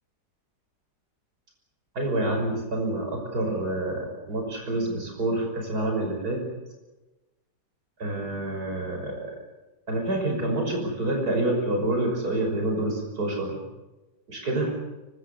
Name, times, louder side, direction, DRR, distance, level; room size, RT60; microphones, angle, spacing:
voice 1, 1.9-6.4 8.0-9.3 9.9-13.6 14.3-14.7, right 2 dB, 60° right, 2 dB, 6.4 m, -27 dB
25.0 x 24.5 x 7.0 m, 1.1 s
omnidirectional pair, 1.8 m